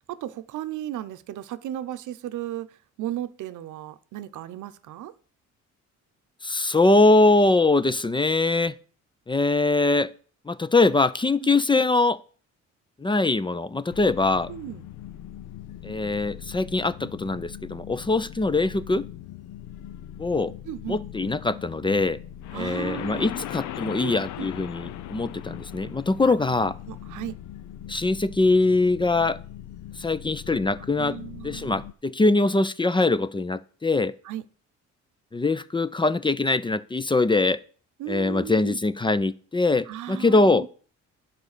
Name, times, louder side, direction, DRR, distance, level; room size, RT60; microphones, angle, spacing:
voice 1, 0.1-5.1 11.4-11.5 14.5-14.9 20.7-21.0 22.5-23.3 24.0-24.5 26.2-26.3 26.9-27.4 31.0-31.7 34.2-34.5 38.0-38.8 39.9-40.7, right 12 dB, 80° right, 0.8 m, -35 dB
voice 2, 6.4-8.7 9.3-10.1 10.5-12.2 13.0-14.5 15.8-19.0 20.2-20.5 20.9-22.2 22.5-26.7 27.9-29.4 30.0-31.2 31.4-34.1 35.3-37.6 38.1-40.7, left 2 dB, 15° left, 0.5 m, -22 dB
sound 1, 13.9-31.9, left 11 dB, 75° left, 0.6 m, -40 dB
9.6 x 5.2 x 6.6 m
cardioid pair, 90°, 30 cm